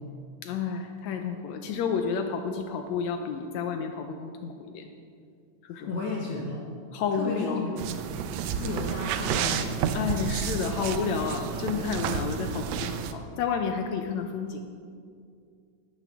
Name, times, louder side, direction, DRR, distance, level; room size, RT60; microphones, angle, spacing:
voice 1, 0.4-4.9 5.6-5.9 6.9-7.6 9.9-14.6, left 6 dB, 80° left, 5 dB, 1.6 m, -30 dB
voice 2, 5.7-6.6 7.1-7.8 8.5-9.8, left 3 dB, 65° left, -2 dB, 1.8 m, -33 dB
sound 1, 7.8-13.1, right 7 dB, 90° right, 1.5 m, -30 dB
12.5 x 11.0 x 3.5 m, 2.3 s
omnidirectional pair, 3.8 m